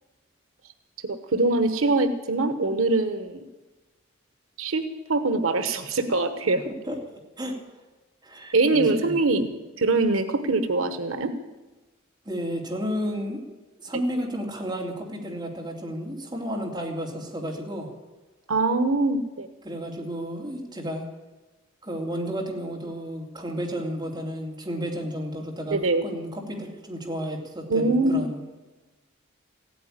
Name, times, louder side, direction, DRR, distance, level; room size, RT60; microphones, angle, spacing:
voice 1, 1.0-3.4 4.6-4.8 5.1-6.7 8.5-11.3 18.5-19.5 25.7-26.0 27.7-28.2, right 3 dB, 85° right, 9 dB, 1.1 m, -23 dB
voice 2, 6.7-7.0 7.4-7.8 8.2-9.2 12.2-13.4 13.8-17.9 19.6-21.0 21.8-28.4, equal, 20° right, -1 dB, 2.8 m, -32 dB
15.5 x 9.2 x 10.0 m, 1.1 s
head